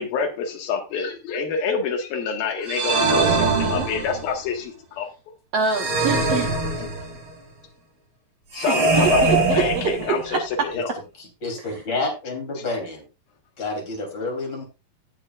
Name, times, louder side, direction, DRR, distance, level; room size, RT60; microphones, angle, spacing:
voice 1, 0.0-5.1 8.5-10.9, left 5 dB, 90° left, 3.5 m, -27 dB
sound 1, 2.7-4.4 5.7-7.3 8.5-10.4, right 3 dB, 40° right, 3.1 m, -22 dB
voice 2, 3.2-3.9 5.5-6.5 8.7-10.7 11.6-11.8, right 6 dB, 65° right, 1.6 m, -26 dB
voice 3, 11.4-13.0 13.6-14.6, left 3 dB, 35° left, 3.7 m, -29 dB
17.5 x 6.9 x 2.4 m
omnidirectional pair, 4.1 m